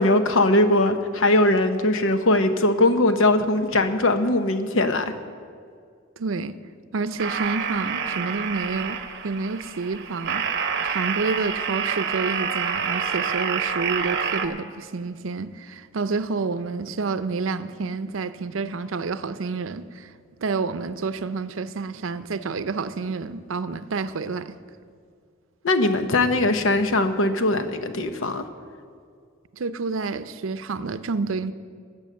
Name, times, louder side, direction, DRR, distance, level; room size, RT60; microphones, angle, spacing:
voice 1, 0.0-5.1 25.6-28.4, left 2 dB, 80° left, 0.9 m, -20 dB
voice 2, 6.2-6.6 6.9-10.5 10.8-20.1 20.4-24.5 29.5-31.5, right 4 dB, 90° right, 0.6 m, -29 dB
sound 1, 7.2-14.5, right 6 dB, 55° right, 0.9 m, -28 dB
14.0 x 8.2 x 6.4 m
head